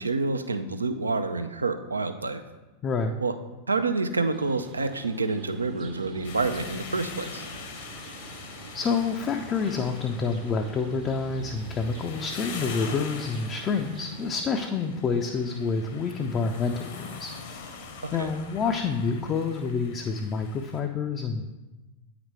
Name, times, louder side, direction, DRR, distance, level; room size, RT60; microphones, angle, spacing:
voice 1, 0.0-2.4 3.2-3.3 3.7-7.5 18.0-18.3, right 3 dB, 80° right, 9 dB, 0.4 m, -28 dB
voice 2, 2.8-3.1 8.3-8.4 8.7-17.3 18.1-21.5, left 5 dB, 25° left, 4 dB, 0.4 m, -28 dB
sound 1, 4.3-14.5, right 4 dB, 35° right, 0.7 m, -47 dB
sound 2, 6.2-20.8, left 4 dB, 55° left, 0.9 m, -42 dB
8.6 x 5.0 x 3.2 m, 1.1 s
figure-of-eight pair, 90°, 0 cm